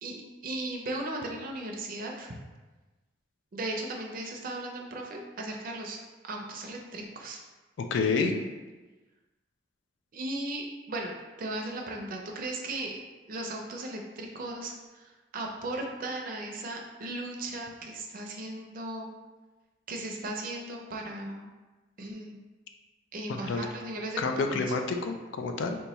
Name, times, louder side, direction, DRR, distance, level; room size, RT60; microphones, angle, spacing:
voice 1, 0.0-2.3 3.5-6.0 6.2-7.4 10.1-11.1 11.4-13.0 13.3-19.1 19.9-21.5 22.0-22.4 23.1-24.7, right 2 dB, 50° right, 0 dB, 0.5 m, -37 dB
voice 2, 7.9-8.4 23.3-23.6 24.2-25.8, left 4 dB, 85° left, 5 dB, 0.4 m, -28 dB
2.9 x 2.3 x 4.0 m, 1.2 s
head